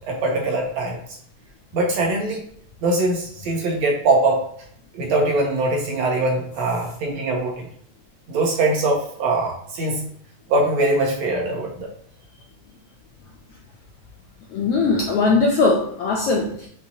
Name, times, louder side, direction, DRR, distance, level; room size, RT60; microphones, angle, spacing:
voice 1, 0.1-1.0 1.7-2.4 2.8-4.4 4.9-7.7 8.3-10.0 10.5-11.9, right 2 dB, 70° right, 0 dB, 1.8 m, -22 dB
voice 2, 14.5-16.7, left 3 dB, 85° left, -1 dB, 1.3 m, -20 dB
6.1 x 2.9 x 2.7 m, 0.64 s
omnidirectional pair, 3.4 m